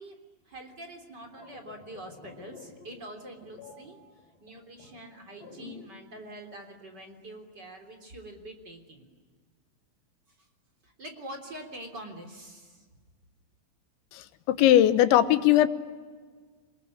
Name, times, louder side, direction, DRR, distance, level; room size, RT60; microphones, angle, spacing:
voice 1, 0.0-4.0 4.4-9.1 10.4-10.5 10.8-12.8, right 1 dB, 25° right, 3 dB, 3.4 m, -45 dB
sound 1, 1.1-6.0 6.3-6.5, left 4 dB, 55° left, 7.7 m, -49 dB
voice 2, 14.1-15.7, left 12 dB, 80° left, 11 dB, 3.4 m, -20 dB
27.5 x 21.5 x 10.0 m, 1.5 s
omnidirectional pair, 5.3 m